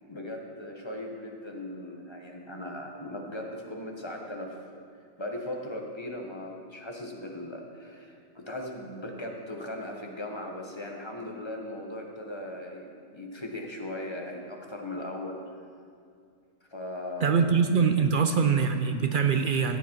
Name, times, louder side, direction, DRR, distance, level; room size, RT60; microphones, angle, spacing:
voice 1, 0.1-4.6 5.2-15.4 16.7-17.4 18.0-18.2, left 1 dB, 20° left, 1 dB, 1.2 m, -38 dB
voice 2, 17.2-19.8, right 6 dB, 60° right, 7 dB, 0.5 m, -23 dB
15.0 x 8.3 x 4.5 m, 2.3 s
omnidirectional pair, 1.4 m